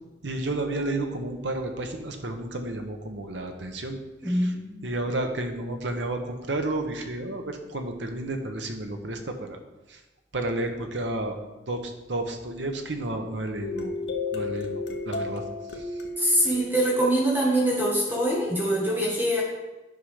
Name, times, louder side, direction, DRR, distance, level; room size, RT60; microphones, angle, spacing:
voice 1, 0.2-4.0 4.2-4.5 4.8-9.6 9.9-10.0 10.3-11.4 11.7-14.0 14.3-15.4 15.8-15.9, right 2 dB, 85° right, 4 dB, 1.2 m, -31 dB
voice 2, 4.2-4.7 16.2-19.4, right 1 dB, 10° right, -5 dB, 1.6 m, -24 dB
sound 1, 13.6-18.1, left 3 dB, 80° left, 1.1 m, -33 dB
9.4 x 5.6 x 5.0 m, 1.1 s
head